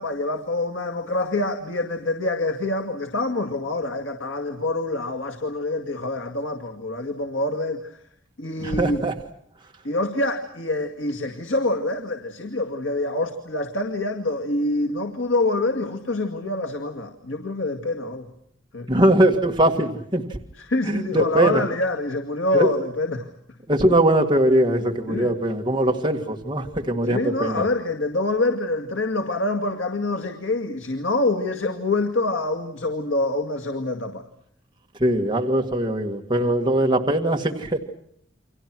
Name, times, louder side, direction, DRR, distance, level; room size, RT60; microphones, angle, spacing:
voice 1, 0.0-7.9 8.4-9.0 9.8-18.3 18.7-18.9 20.6-23.3 25.1-25.3 27.1-34.2 36.4-36.5, left 2 dB, 70° left, 5 dB, 2.1 m, -26 dB
voice 2, 8.6-9.1 18.9-20.2 20.8-21.6 22.5-22.7 23.7-27.6 35.0-37.8, right 1 dB, 25° right, 1 dB, 1.9 m, -21 dB
30.0 x 25.0 x 6.1 m, 0.70 s
head